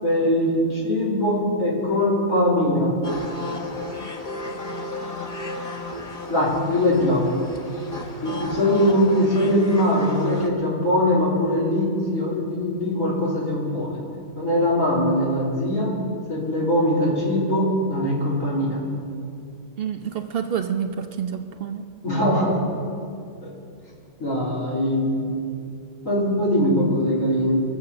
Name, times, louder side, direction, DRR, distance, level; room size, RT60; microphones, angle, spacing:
voice 1, 0.0-2.9 6.3-7.4 8.2-14.0 14.4-15.9 16.3-18.8 22.0-22.6 24.2-25.1 26.0-27.6, left 1 dB, 85° left, -6 dB, 4.2 m, -21 dB
sound 1, 3.0-10.5, left 2 dB, 30° left, 1.3 m, -33 dB
voice 2, 19.8-21.9, right 8 dB, 50° right, 6 dB, 0.9 m, -28 dB
22.5 x 8.0 x 6.8 m, 2.4 s
omnidirectional pair, 1.4 m